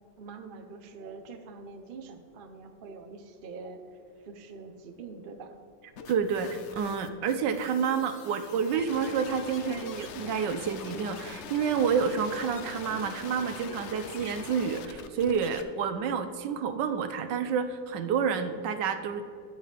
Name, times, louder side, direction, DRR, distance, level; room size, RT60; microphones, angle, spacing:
voice 1, 0.2-5.6, right 4 dB, 60° right, 5 dB, 0.5 m, -45 dB
sound 1, 6.0-15.6, left 6 dB, 85° left, 0.6 m, -43 dB
voice 2, 6.1-19.2, right 6 dB, 75° right, 9 dB, 1.3 m, -29 dB
13.0 x 8.1 x 3.4 m, 2.4 s
omnidirectional pair, 2.0 m